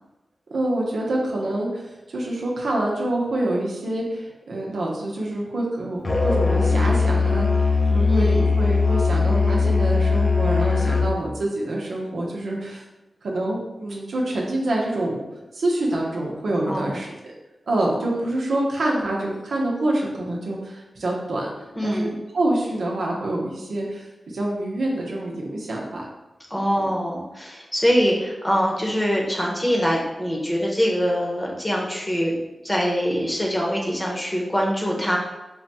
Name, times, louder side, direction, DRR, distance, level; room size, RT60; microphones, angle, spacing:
voice 1, 0.5-12.8 13.2-15.2 15.5-17.1 17.7-21.5 21.8-26.0 26.7-26.9, right 1 dB, 85° right, -2 dB, 0.8 m, -26 dB
Musical instrument, 6.0-11.2, left 4 dB, 35° left, 0.5 m, -20 dB
voice 2, 8.1-8.5 16.7-16.9 17.9-18.0 21.7-22.1 26.5-32.3 32.6-35.2, equal, 15° left, -2 dB, 0.9 m, -23 dB
3.5 x 2.3 x 4.1 m, 1.0 s
cardioid pair, 65°, 0 cm